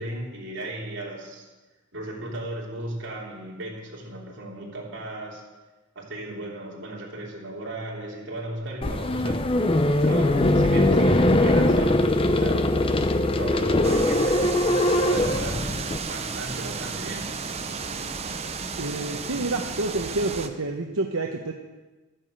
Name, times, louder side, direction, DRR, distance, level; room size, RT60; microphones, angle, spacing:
voice 1, 0.0-1.4 1.9-5.4 5.9-9.5 10.0-12.8 13.1-15.7 16.0-17.4, right 1 dB, 55° right, -3 dB, 3.4 m, -36 dB
sound 1, 8.8-16.0, left 1 dB, 25° left, 0.6 m, -21 dB
sound 2, 13.8-20.5, right 4 dB, 30° right, 0.7 m, -33 dB
voice 2, 18.8-21.5, right 2 dB, 80° right, 2 dB, 1.0 m, -28 dB
12.0 x 9.0 x 7.9 m, 1.2 s
head